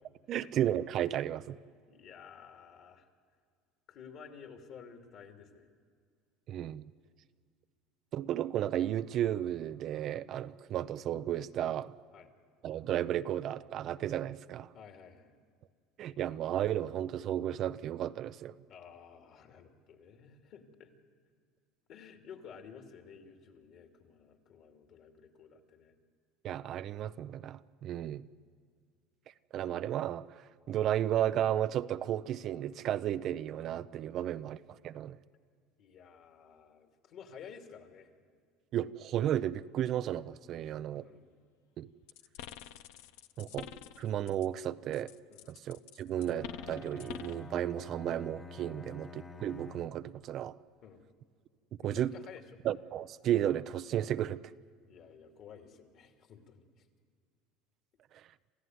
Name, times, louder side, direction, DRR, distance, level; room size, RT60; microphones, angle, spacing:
voice 1, 0.3-1.6 6.5-6.8 8.1-11.9 12.6-14.7 16.0-18.5 26.4-28.3 29.5-35.2 38.7-41.1 41.8-41.9 43.4-45.1 45.5-50.6 51.8-52.1 52.6-54.4 58.1-58.2, right 11 dB, 50° right, 13 dB, 0.6 m, -33 dB
voice 2, 1.9-3.1 3.9-5.7 12.1-12.3 14.7-15.3 18.7-20.9 21.9-25.9 27.9-28.2 35.8-38.1 40.9-41.3 45.3-45.5 48.8-48.9 50.8-51.0 51.8-52.4 54.9-56.9, left 7 dB, 55° left, 4 dB, 2.8 m, -53 dB
sound 1, 42.1-44.6 44.9-47.5, left 10 dB, 75° left, 0.8 m, -47 dB
Bowed string instrument, 46.2-50.3, left 3 dB, 20° left, 1.1 m, -48 dB
27.5 x 15.0 x 9.4 m, 2.1 s
supercardioid pair, 105°, 0 cm